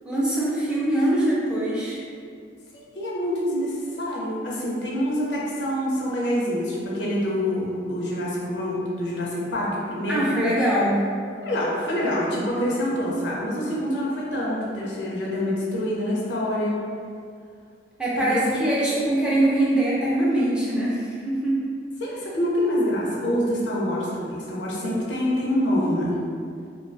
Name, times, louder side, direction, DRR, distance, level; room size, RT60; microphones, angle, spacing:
voice 1, 0.0-2.0 10.1-11.0 18.0-21.6, right 1 dB, 5° right, -8 dB, 0.3 m, -23 dB
voice 2, 2.7-10.3 11.4-16.8 18.2-18.6 22.0-26.1, equal, 70° left, -5 dB, 0.5 m, -26 dB
2.2 x 2.2 x 2.5 m, 2.2 s
head